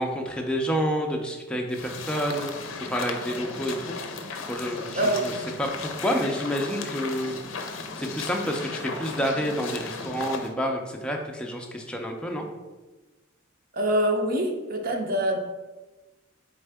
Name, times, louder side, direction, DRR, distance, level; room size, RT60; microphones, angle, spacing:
voice 1, 0.0-3.9 4.5-5.3 5.6-7.3 8.0-12.4, equal, 5° left, 1 dB, 0.4 m, -29 dB
sound 1, 1.7-10.5, left 4 dB, 75° left, 0.5 m, -36 dB
voice 2, 5.0-5.4 13.7-15.4, right 1 dB, 45° right, 2 dB, 0.6 m, -25 dB
4.3 x 3.6 x 3.4 m, 1.2 s
head